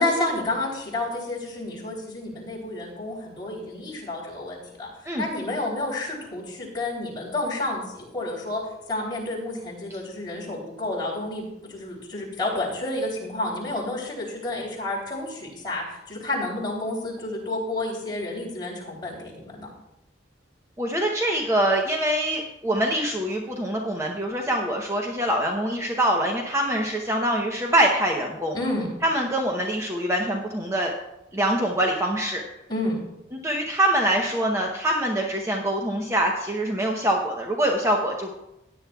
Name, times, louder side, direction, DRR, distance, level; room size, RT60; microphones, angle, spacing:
voice 1, 0.0-4.9 5.2-8.6 8.9-19.7 28.5-28.9 32.7-33.0, left 2 dB, 25° left, -4 dB, 3.3 m, -30 dB
voice 2, 20.8-28.6 29.0-30.9 31.3-32.4 33.3-38.3, right 1 dB, 15° right, 0 dB, 0.8 m, -24 dB
16.5 x 9.6 x 2.3 m, 0.90 s
head